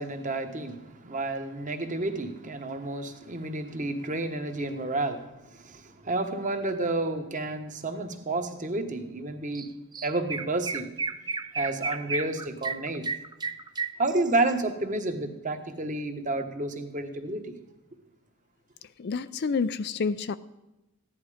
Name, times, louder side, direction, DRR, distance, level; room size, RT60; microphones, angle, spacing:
voice 1, 0.0-9.7 10.0-10.9 11.5-13.0 14.0-17.5, right 2 dB, 35° right, 6 dB, 1.3 m, -30 dB
Chirp tweet, 9.5-9.7 9.9-14.5, right 4 dB, 20° right, 0.5 m, -33 dB
voice 2, 19.0-20.3, left 5 dB, 50° left, 13 dB, 0.4 m, -28 dB
15.5 x 10.5 x 5.0 m, 1.0 s
head